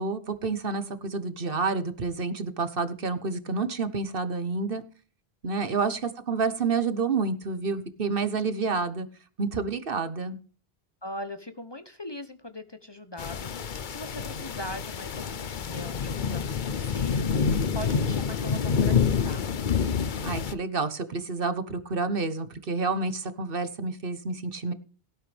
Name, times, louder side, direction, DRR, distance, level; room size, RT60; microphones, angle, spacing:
voice 1, 0.0-4.8 5.4-9.1 9.4-10.4 20.2-24.7, right 4 dB, 60° right, 12 dB, 1.3 m, -29 dB
voice 2, 11.0-19.4, left 1 dB, 25° left, 9 dB, 0.9 m, -41 dB
sound 1, 13.2-20.5, left 6 dB, 55° left, 0.9 m, -27 dB
17.5 x 9.0 x 3.4 m, 0.41 s
omnidirectional pair, 1.0 m